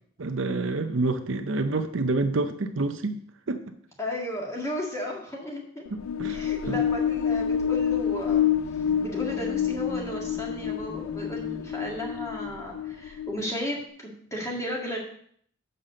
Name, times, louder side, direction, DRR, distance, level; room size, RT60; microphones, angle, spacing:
voice 1, 0.2-3.2 3.5-3.7 5.9-6.8, right 2 dB, 65° right, 8 dB, 0.7 m, -28 dB
voice 2, 4.0-5.8 6.3-8.5 9.0-15.0, left 1 dB, 15° left, -2 dB, 1.9 m, -34 dB
sound 1, 5.9-13.5, left 8 dB, 80° left, 0.3 m, -28 dB
sound 2, 8.1-12.8, left 2 dB, 30° left, 3.2 m, -44 dB
6.7 x 5.7 x 6.6 m, 0.62 s
head